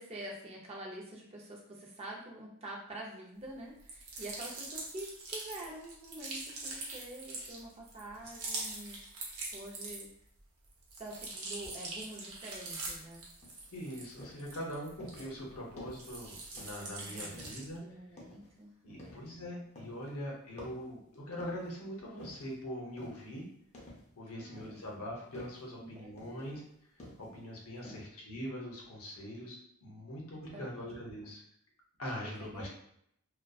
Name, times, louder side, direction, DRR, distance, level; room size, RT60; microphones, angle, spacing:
voice 1, 0.0-10.1 11.0-13.2 17.0-17.4 17.8-19.1 24.3-24.9 25.7-26.5 27.8-28.0 30.5-31.3 32.2-32.7, right 1 dB, 30° right, -2 dB, 0.4 m, -47 dB
sound 1, 3.8-10.3 10.6-15.5 15.9-17.8, right 3 dB, 80° right, 0.7 m, -43 dB
sound 2, 13.4-13.7 14.2-14.5 15.0-15.3 15.8-16.1 16.6-16.9 17.3-17.7 18.2-18.5 19.0-19.4 19.8-20.1 20.6-21.7 22.2-22.5 23.0-23.3 23.7-24.2 24.5-24.9 25.3-25.7 26.2-26.5 27.0-27.4 27.8-28.0, left 1 dB, 30° left, 0.5 m, -51 dB
voice 2, 13.7-17.8 18.8-23.5 24.2-26.6 27.2-31.4 32.0-32.7, equal, 75° left, -1 dB, 0.7 m, -42 dB
2.5 x 2.2 x 2.3 m, 0.71 s
head